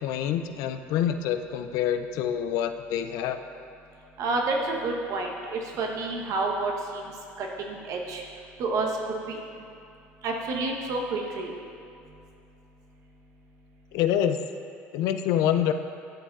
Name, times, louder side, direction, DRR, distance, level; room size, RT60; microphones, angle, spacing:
voice 1, 0.0-3.4 13.9-14.4 14.9-15.7, left 10 dB, 70° left, 9 dB, 0.4 m, -26 dB
voice 2, 4.2-7.1 7.4-8.2 8.6-9.4 10.2-11.5, right 3 dB, 60° right, 1 dB, 1.0 m, -29 dB
11.5 x 5.1 x 2.4 m, 2.5 s
hypercardioid pair, 75°, 6 cm